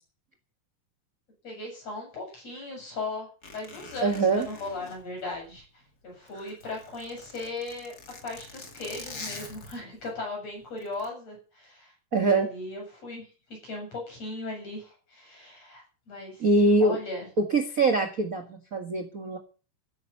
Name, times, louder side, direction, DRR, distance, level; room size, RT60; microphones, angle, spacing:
voice 1, 1.4-3.3 3.5-5.6 6.0-7.9 8.2-11.9 12.2-13.2 13.6-16.5 16.8-17.3, left 2 dB, 45° left, 1 dB, 9.0 m, -37 dB
Zipper (clothing), 3.4-5.8 6.2-10.1 10.8-11.1, left 3 dB, 30° left, 2.6 m, -45 dB
voice 2, 4.0-4.5 12.1-12.5 16.4-17.0 17.4-19.4, right 3 dB, 35° right, 5 dB, 1.6 m, -23 dB
14.5 x 10.5 x 7.0 m, 0.38 s
omnidirectional pair, 4.0 m